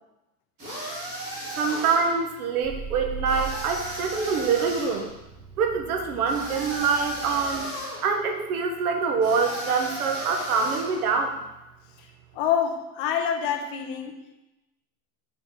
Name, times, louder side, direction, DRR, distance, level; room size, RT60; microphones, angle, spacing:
sound 1, 0.6-2.2 3.2-5.0 6.3-8.1 9.2-11.0, right 1 dB, 20° right, 2.7 m, -35 dB
voice 1, 1.6-5.1 5.6-7.7 8.0-11.4, right 5 dB, 70° right, 4 dB, 1.5 m, -25 dB
sound 2, 2.6-7.6, right 5 dB, ahead, 0.3 m, -40 dB
voice 2, 12.3-14.4, left 8 dB, 35° left, 4 dB, 0.8 m, -27 dB
7.2 x 4.4 x 6.4 m, 0.96 s
supercardioid pair, 180°, 46 cm